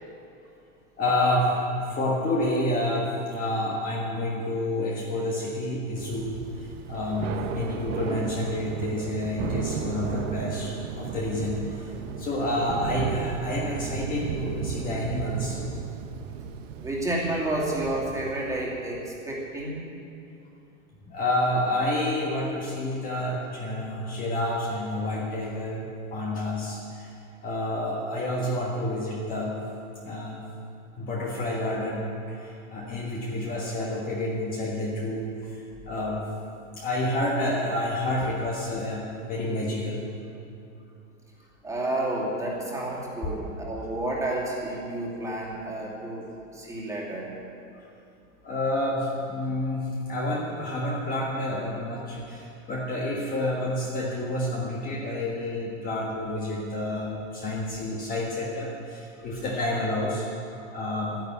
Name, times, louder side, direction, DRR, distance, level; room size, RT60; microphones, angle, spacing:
voice 1, 1.0-15.6 21.1-25.8 26.1-27.2 27.4-29.6 30.0-30.4 31.0-36.3 36.8-40.0 48.4-60.3 60.5-61.2, left 1 dB, 20° left, -3 dB, 1.5 m, -29 dB
Thunder / Rain, 6.0-18.9, right 7 dB, 70° right, 1.1 m, -34 dB
voice 2, 16.8-19.9 41.6-46.2 46.5-47.3, right 1 dB, 10° right, -4 dB, 2.5 m, -30 dB
12.0 x 10.5 x 8.5 m, 2.6 s
supercardioid pair, 155°, 39 cm